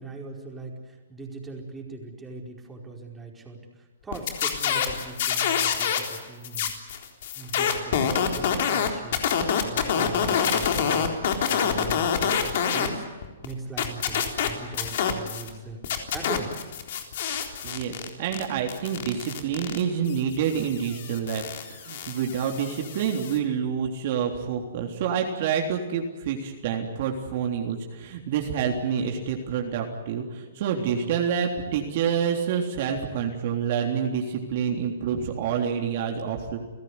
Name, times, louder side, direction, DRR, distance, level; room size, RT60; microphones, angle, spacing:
voice 1, 0.0-6.7 7.3-9.2 9.6-16.7, right 3 dB, 10° right, 0 dB, 4.8 m, -40 dB
sound 1, 4.1-6.2 6.4-12.9 13.2-15.5 15.8-23.4, left 7 dB, 55° left, 3.8 m, -27 dB
voice 2, 17.6-36.6, right 7 dB, 50° right, 2 dB, 3.5 m, -28 dB
30.0 x 16.0 x 9.7 m, 1.3 s
hypercardioid pair, 145°, 0 cm